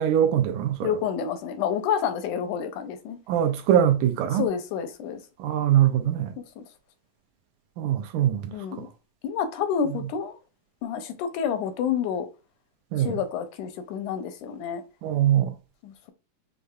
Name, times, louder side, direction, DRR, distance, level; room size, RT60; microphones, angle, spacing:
voice 1, 0.0-1.0 3.3-4.5 5.4-6.3 7.8-8.9 12.9-13.2 15.0-15.6, right 10 dB, 80° right, 1.9 m, -23 dB
voice 2, 0.8-3.2 4.3-5.2 6.6-6.7 8.5-8.9 9.2-10.4 10.8-12.3 13.0-14.8 15.8-16.1, left 8 dB, 80° left, 1.9 m, -29 dB
6.5 x 2.5 x 2.3 m
omnidirectional pair, 3.8 m